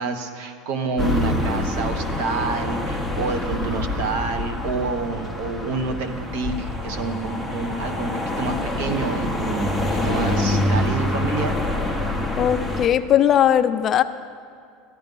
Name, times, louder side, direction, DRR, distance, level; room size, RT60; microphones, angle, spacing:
voice 1, 0.0-11.6, right 4 dB, 60° right, 8 dB, 1.1 m, -28 dB
sound 1, 1.0-12.9, left 1 dB, 5° right, 0.7 m, -26 dB
voice 2, 12.4-14.0, left 10 dB, 25° left, 10 dB, 0.3 m, -18 dB
14.0 x 11.0 x 5.3 m, 2.2 s
cardioid pair, 170°, 0 cm